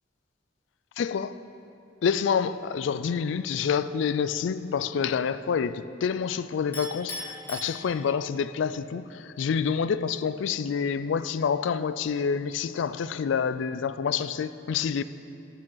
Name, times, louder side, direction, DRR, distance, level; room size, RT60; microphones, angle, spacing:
voice 1, 1.0-1.4 2.0-15.0, left 6 dB, 70° left, 0.3 m, -28 dB
Chink clink, 6.7-8.4, left 1 dB, 10° left, 2.8 m, -39 dB
12.0 x 8.8 x 3.9 m
head